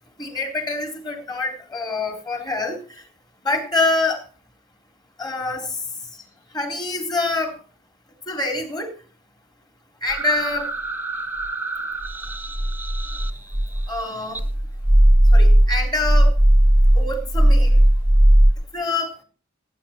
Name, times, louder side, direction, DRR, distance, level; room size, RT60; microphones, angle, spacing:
voice 1, 0.2-2.8 3.4-4.2 5.2-5.7 6.5-7.5 8.3-8.9 10.0-10.7 13.9-14.4 15.3-16.3 16.9-17.7 18.7-19.1, left 2 dB, 20° left, 4 dB, 3.7 m, -25 dB
sound 1, 10.1-14.0 14.4-18.5, right 1 dB, 10° right, 0.8 m, -17 dB
18.0 x 9.5 x 4.4 m, 0.38 s
head